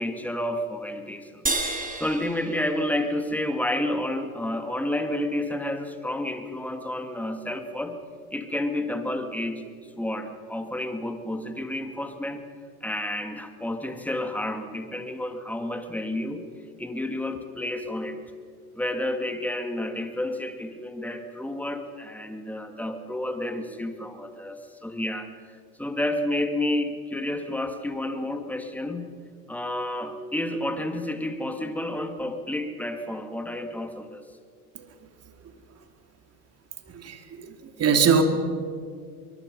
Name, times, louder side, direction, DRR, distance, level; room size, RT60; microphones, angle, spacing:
voice 1, 0.0-8.0 8.3-12.4 12.8-16.4 16.8-18.2 18.7-25.3 25.8-29.1 29.5-34.2, left 1 dB, 5° left, 7 dB, 2.3 m, -30 dB
sound 1, 1.5-4.0, right 3 dB, 20° right, 3.7 m, -32 dB
voice 2, 36.9-38.2, right 6 dB, 35° right, 7 dB, 2.7 m, -23 dB
24.0 x 23.5 x 5.5 m, 2.1 s
hypercardioid pair, 80°, 44 cm